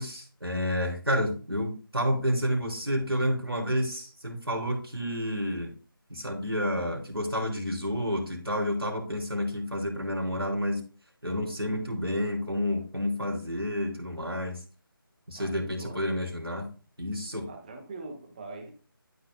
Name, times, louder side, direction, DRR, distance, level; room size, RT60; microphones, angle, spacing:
voice 1, 0.0-5.7 6.1-10.8 11.2-14.6 15.3-16.7 17.0-17.5, equal, 85° right, 3.6 m, -30 dB
voice 2, 15.3-16.1 17.5-18.7, right 3 dB, 20° right, 1.5 m, -43 dB
12.5 x 6.0 x 2.3 m
figure-of-eight pair, 160°, 12 cm